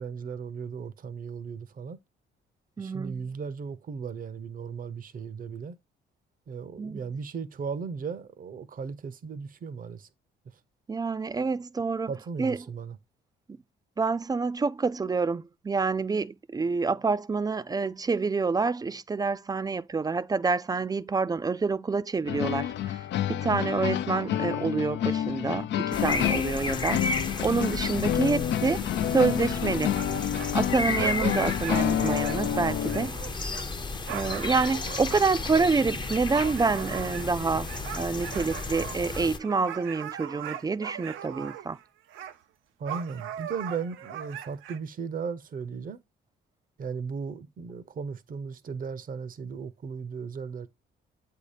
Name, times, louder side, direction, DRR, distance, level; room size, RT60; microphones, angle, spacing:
voice 1, 0.0-2.0 2.8-5.8 6.5-10.1 12.1-13.0 34.9-35.0 42.8-46.0 46.8-50.7, right 5 dB, 45° right, 0.7 m, -36 dB
voice 2, 2.8-3.2 6.8-7.0 10.9-12.1 12.4-12.6 14.0-23.0 23.3-27.0 27.4-30.0 30.5-33.2 34.1-41.8, right 4 dB, 20° right, 0.4 m, -27 dB
sound 1, 22.3-33.1, left 11 dB, 65° left, 0.4 m, -29 dB
sound 2, 25.9-39.4, left 3 dB, 25° left, 0.7 m, -33 dB
sound 3, 29.9-41.8 42.1-42.4 42.9-44.8, right 10 dB, 80° right, 0.6 m, -39 dB
8.1 x 2.8 x 4.9 m
cardioid pair, 90°, 20 cm